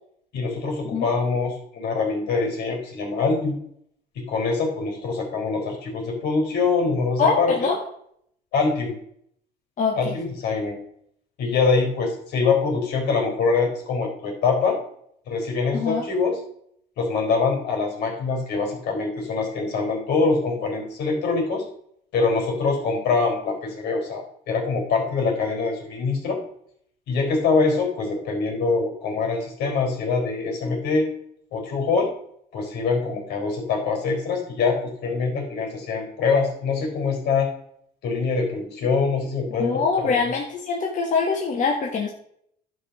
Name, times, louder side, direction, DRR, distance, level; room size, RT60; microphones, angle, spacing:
voice 1, 0.3-3.6 4.1-7.7 8.5-8.9 10.0-10.8 11.4-14.8 15.3-16.4 17.0-21.6 22.1-26.4 27.1-31.1 31.5-32.1 32.5-37.5 38.0-40.3, left 4 dB, 80° left, 2 dB, 4.2 m, -24 dB
voice 2, 7.2-7.8 9.8-10.1 15.7-16.0 39.6-42.1, left 4 dB, 50° left, 1 dB, 1.7 m, -23 dB
11.5 x 5.2 x 6.5 m, 0.68 s
cardioid pair, 110°, 17 cm